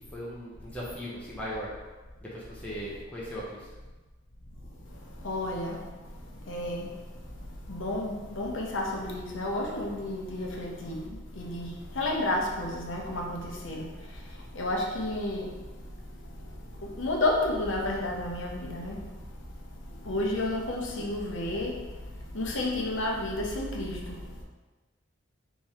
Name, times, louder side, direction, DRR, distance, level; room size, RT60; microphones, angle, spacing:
voice 1, 0.1-1.7 2.2-3.6, equal, 5° left, -7 dB, 0.7 m, -38 dB
voice 2, 4.6-24.4, left 1 dB, 75° left, -1 dB, 0.8 m, -32 dB
3.6 x 3.0 x 4.3 m, 1.2 s
head